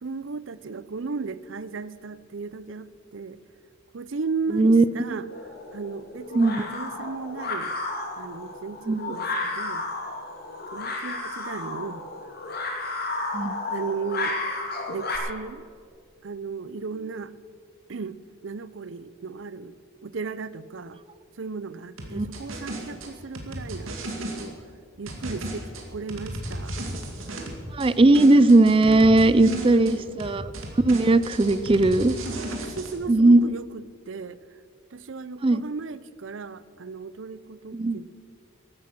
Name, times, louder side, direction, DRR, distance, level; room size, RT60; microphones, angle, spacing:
voice 1, 0.0-3.4 3.9-5.3 5.7-7.7 8.2-9.8 10.7-12.0 13.7-14.4 14.9-15.7 16.2-17.3 17.9-19.7 20.0-21.0 21.4-24.6 25.0-26.8 27.2-27.5 29.3-30.1 32.5-34.4 34.9-38.1, right 4 dB, 70° right, 17 dB, 0.6 m, -35 dB
voice 2, 4.5-5.1 6.4-6.6 8.9-9.2 13.3-13.6 22.1-22.3 27.7-30.5 30.8-32.1 33.1-33.5 35.4-35.6 37.7-38.0, right 2 dB, 25° right, 16 dB, 0.4 m, -18 dB
sound 1, 5.3-15.2, left 2 dB, 50° left, 2.5 m, -32 dB
sound 2, 22.0-24.5 25.1-27.9 28.1-29.9 30.2-32.9, right 1 dB, 85° right, 2.5 m, -34 dB
15.0 x 12.0 x 6.0 m, 2.2 s
head